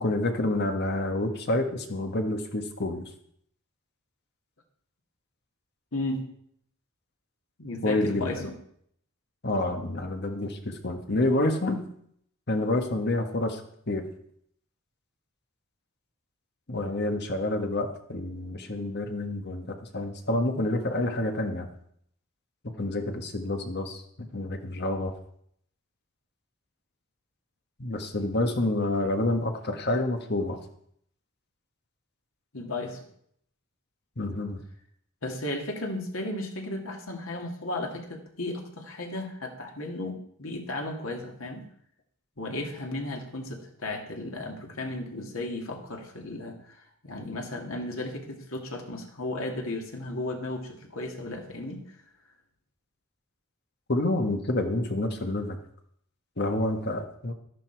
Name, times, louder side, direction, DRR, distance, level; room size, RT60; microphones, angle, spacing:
voice 1, 0.0-3.0 7.8-8.5 9.4-11.8 12.5-13.6 13.9-14.0 16.7-21.7 22.8-25.1 27.8-30.6 34.2-34.6 53.9-55.6 56.4-57.3, left 2 dB, 55° left, 5 dB, 1.5 m, -28 dB
voice 2, 5.9-6.3 7.6-8.6 32.5-33.0 35.2-41.6 42.4-51.8, left 2 dB, 85° left, 2 dB, 2.3 m, -35 dB
12.0 x 11.0 x 4.6 m, 0.68 s
head